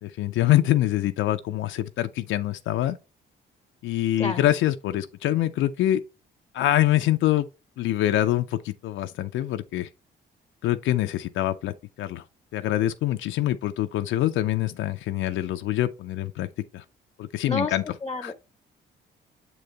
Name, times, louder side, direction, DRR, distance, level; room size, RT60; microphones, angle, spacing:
voice 1, 0.0-3.0 3.8-6.0 6.5-7.5 7.8-9.9 10.6-12.2 12.5-16.5 16.7-16.8 17.2-17.8 18.2-18.3, left 13 dB, 80° left, 0.5 m, -25 dB
voice 2, 18.0-18.3, left 3 dB, 20° left, 0.7 m, -29 dB
7.6 x 3.9 x 3.3 m
cardioid pair, 90°, 20 cm